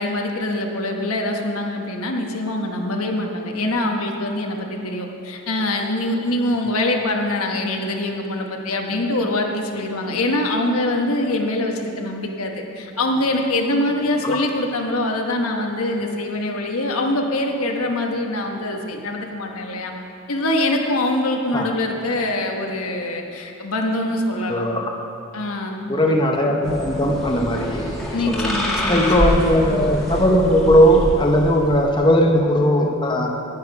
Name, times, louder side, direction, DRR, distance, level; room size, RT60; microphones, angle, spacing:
voice 1, 0.0-19.9 20.3-24.6 25.3-25.8 28.1-29.3, left 1 dB, 80° left, 2 dB, 1.2 m, -24 dB
voice 2, 24.5-24.9 25.9-28.5 28.9-33.3, equal, 20° left, 1 dB, 0.7 m, -18 dB
sound 1, 26.6-32.0, equal, 5° left, 1.8 m, -26 dB
10.0 x 9.6 x 5.4 m, 2.7 s
head